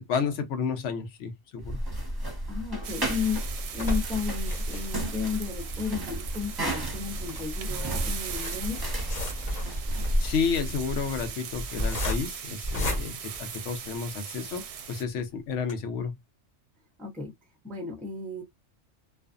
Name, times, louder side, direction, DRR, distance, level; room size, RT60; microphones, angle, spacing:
voice 1, 0.0-1.8 10.2-14.6 14.9-16.1, left 6 dB, 80° left, 1.0 m, -31 dB
sound 1, 1.6-11.3, right 1 dB, 20° right, 0.9 m, -33 dB
voice 2, 2.5-3.4 3.7-8.8 17.0-17.3 17.6-18.4, left 6 dB, ahead, 0.5 m, -33 dB
sound 2, 2.8-14.2 14.7-14.8 15.1-15.2 15.6-15.7, left 1 dB, 40° left, 0.9 m, -35 dB
sound 3, 2.8-15.0, right 8 dB, 65° right, 0.8 m, -40 dB
2.5 x 2.4 x 2.4 m
omnidirectional pair, 1.2 m